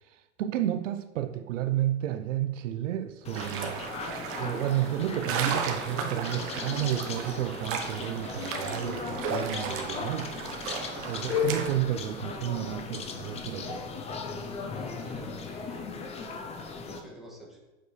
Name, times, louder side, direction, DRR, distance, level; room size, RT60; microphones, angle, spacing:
voice 1, 0.0-3.8 4.3-10.3 11.1-13.9, right 12 dB, 80° right, 0.6 m, -31 dB
sound 1, 3.2-17.0, left 5 dB, 15° left, 0.5 m, -36 dB
sound 2, 3.3-11.7, right 6 dB, 35° right, 1.0 m, -35 dB
voice 2, 14.7-16.0 16.8-17.6, right 1 dB, ahead, 1.8 m, -47 dB
7.9 x 6.4 x 3.2 m
supercardioid pair, 135°, 37 cm